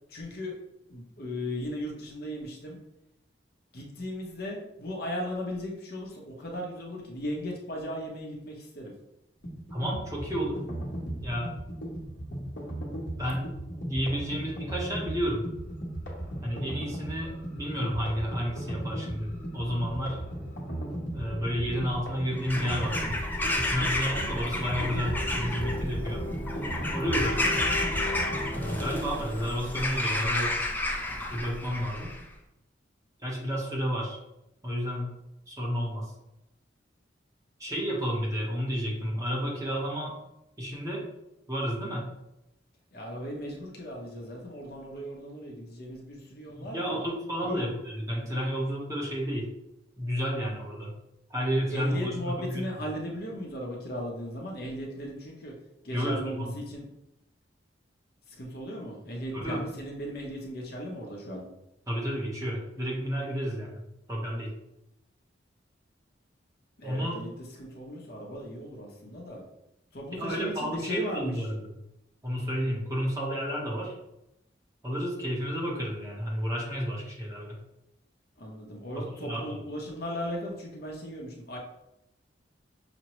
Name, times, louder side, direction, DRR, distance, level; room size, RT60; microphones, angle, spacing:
voice 1, 0.1-0.6 0.9-2.8 3.7-8.9 42.9-47.0 47.4-47.7 51.7-55.5 55.8-56.9 58.3-61.4 66.8-69.4 69.9-71.4 78.4-81.6, equal, 55° left, -1 dB, 0.8 m, -37 dB
sound 1, 9.4-29.0, equal, 70° left, 1.1 m, -36 dB
voice 2, 9.7-10.6 11.2-11.5 12.3-12.5 13.2-15.4 16.4-20.2 21.1-23.1 23.6-26.2 26.9-27.5 28.5-30.5 31.3-32.1 33.2-34.2 34.6-35.1 35.5-36.1 37.6-40.1 40.6-41.0 41.5-42.1 46.5-49.5 50.0-50.9 51.3-52.6 55.9-56.5 59.3-59.7 61.9-63.8 64.1-64.5 66.8-67.2 70.2-71.7 72.2-73.9 74.8-77.6 79.1-79.6, equal, 20° right, -4 dB, 0.9 m, -31 dB
Bird vocalization bird call bird song / Crow, 22.3-32.2, left 1 dB, 10° left, 0.4 m, -31 dB
5.9 x 2.1 x 3.0 m, 0.85 s
head